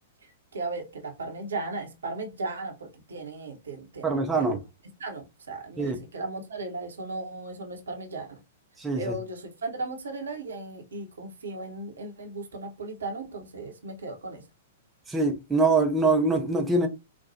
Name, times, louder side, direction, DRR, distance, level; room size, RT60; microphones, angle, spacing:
voice 1, 0.5-4.6 5.0-8.4 8.9-14.4, right 3 dB, 65° right, 0.8 m, -36 dB
voice 2, 4.0-4.6 5.8-6.0 8.8-9.1 15.1-16.9, right 3 dB, 10° right, 0.5 m, -24 dB
4.2 x 2.2 x 2.6 m
figure-of-eight pair, 105°, 0 cm